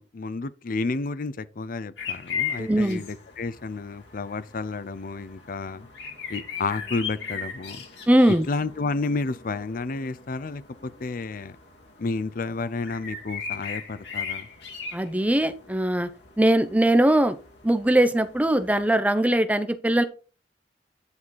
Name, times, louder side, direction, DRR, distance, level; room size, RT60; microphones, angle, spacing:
voice 1, 0.0-5.9 6.3-7.8 8.5-11.6 12.0-14.5, left 3 dB, 50° left, 0.5 m, -31 dB
sound 1, 2.0-18.9, left 6 dB, 75° left, 2.2 m, -38 dB
voice 2, 2.6-3.0 8.1-8.5 14.9-16.1 16.4-17.4 17.6-20.0, right 1 dB, 10° right, 0.7 m, -21 dB
9.7 x 4.2 x 4.5 m
head